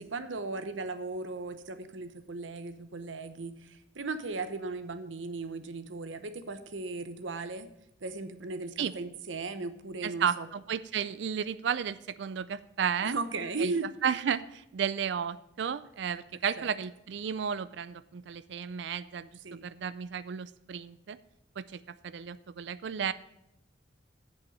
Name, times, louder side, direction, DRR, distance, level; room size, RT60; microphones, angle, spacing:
voice 1, 0.0-7.7 8.0-10.5 13.0-14.0 16.6-16.7 19.4-19.7, right 3 dB, 85° right, 10 dB, 0.9 m, -37 dB
voice 2, 10.0-13.1 13.6-13.7 14.0-19.3 19.6-21.2 21.6-21.8 22.0-23.1, right 7 dB, 65° right, 15 dB, 0.4 m, -33 dB
8.1 x 7.0 x 6.4 m, 0.86 s
head